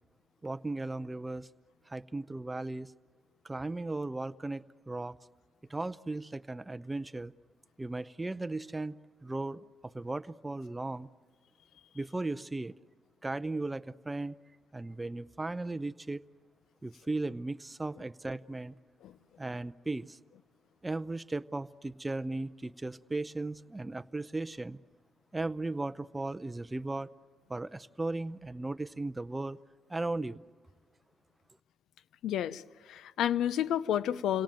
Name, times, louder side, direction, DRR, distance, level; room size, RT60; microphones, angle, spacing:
voice 1, 0.4-1.5 1.9-2.9 3.4-5.2 5.7-7.3 7.8-9.0 9.2-11.1 11.9-12.7 13.2-14.4 14.7-16.2 16.8-18.7 19.4-20.2 20.8-24.8 25.3-27.1 27.5-29.6 29.9-30.4, right 2 dB, 15° right, 0.6 m, -36 dB
voice 2, 32.2-32.6 32.9-34.4, left 10 dB, 75° left, 0.7 m, -30 dB
26.5 x 18.0 x 9.1 m
cardioid pair, 90°, 0 cm